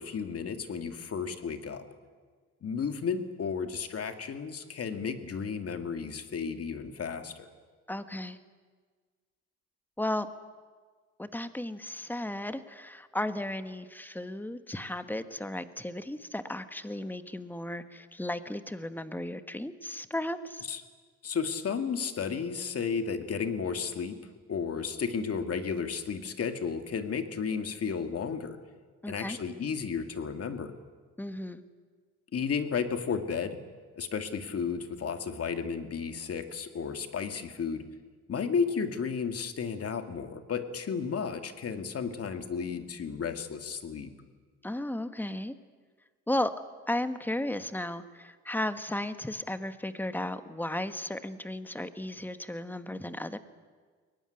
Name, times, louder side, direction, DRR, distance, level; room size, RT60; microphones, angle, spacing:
voice 1, 0.0-1.8 2.6-7.5 20.7-20.8 21.2-24.2 24.5-28.6 29.1-30.7 32.3-33.6 34.0-37.8 38.3-44.1, left 6 dB, 50° left, 7 dB, 2.2 m, -33 dB
voice 2, 7.9-8.4 10.0-10.3 11.2-20.6 29.0-29.4 31.2-31.6 44.6-45.5 46.3-46.5 46.9-53.4, left 1 dB, 5° left, 10 dB, 1.4 m, -34 dB
22.5 x 18.0 x 10.0 m, 1.5 s
cardioid pair, 90°, 30 cm